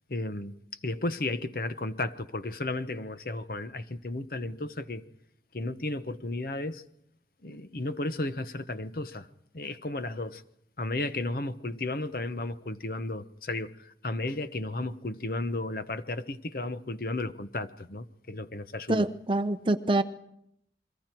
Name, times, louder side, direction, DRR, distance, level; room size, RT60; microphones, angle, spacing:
voice 1, 0.1-0.5 0.8-5.0 5.5-6.8 7.4-9.3 9.5-10.4 10.8-19.1, left 2 dB, 55° left, 0.9 m, -34 dB
voice 2, 18.9-20.0, right 2 dB, 30° right, 0.7 m, -25 dB
29.5 x 23.0 x 4.6 m
head